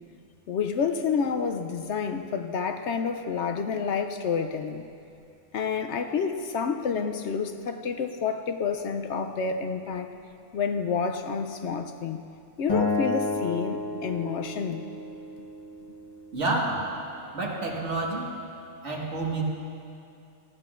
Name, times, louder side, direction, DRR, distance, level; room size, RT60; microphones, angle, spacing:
voice 1, 0.5-4.9 5.5-10.1 10.5-12.2 12.6-14.8, left 6 dB, 65° left, 7 dB, 0.8 m, -29 dB
Acoustic guitar, 12.7-15.9, left 2 dB, 30° left, 1.1 m, -31 dB
voice 2, 16.3-16.8 17.3-18.3 18.8-19.4, right 2 dB, 65° right, -2 dB, 1.9 m, -28 dB
19.0 x 14.0 x 2.5 m, 2.5 s
omnidirectional pair, 1.3 m